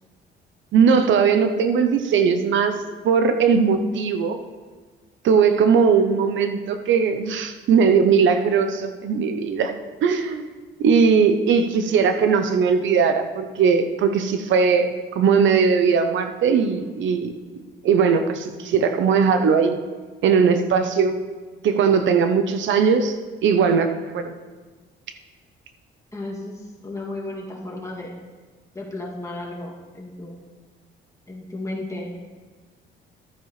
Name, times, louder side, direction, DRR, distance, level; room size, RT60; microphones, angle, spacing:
voice 1, 0.7-2.8 3.0-4.4 5.2-9.7 10.0-10.5 10.8-17.3 17.8-19.8 20.2-21.2 21.6-23.2 23.4-23.9 24.1-24.3, right 6 dB, 70° right, 8 dB, 0.7 m, -19 dB
voice 2, 26.1-28.1 28.7-30.4 31.3-32.1, left 2 dB, 15° left, -3 dB, 2.3 m, -34 dB
12.5 x 9.2 x 3.2 m, 1.4 s
cardioid pair, 90°, 20 cm